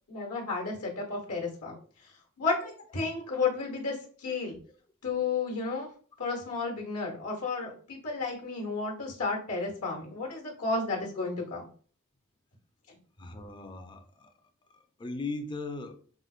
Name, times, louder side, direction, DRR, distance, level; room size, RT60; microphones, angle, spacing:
voice 1, 0.1-1.7 2.4-4.6 5.0-5.9 6.2-11.7, left 4 dB, 75° left, 0 dB, 1.0 m, -32 dB
voice 2, 13.2-14.3 14.7-16.0, left 3 dB, 20° left, 6 dB, 0.4 m, -38 dB
4.9 x 2.0 x 2.4 m, 0.43 s
head